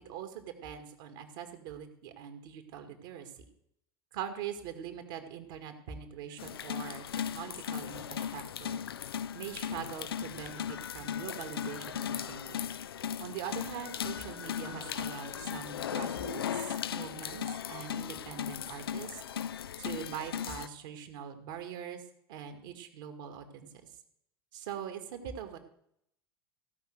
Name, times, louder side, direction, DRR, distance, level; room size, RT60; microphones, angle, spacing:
voice 1, 0.1-3.4 4.1-8.9 9.3-12.7 13.2-19.2 19.8-22.0 22.3-23.7 24.5-25.6, right 8 dB, 60° right, 6 dB, 2.0 m, -42 dB
sound 1, 6.4-20.7, left 9 dB, 75° left, 0.4 m, -37 dB
16.0 x 5.9 x 7.8 m, 0.74 s
figure-of-eight pair, 75°, 13 cm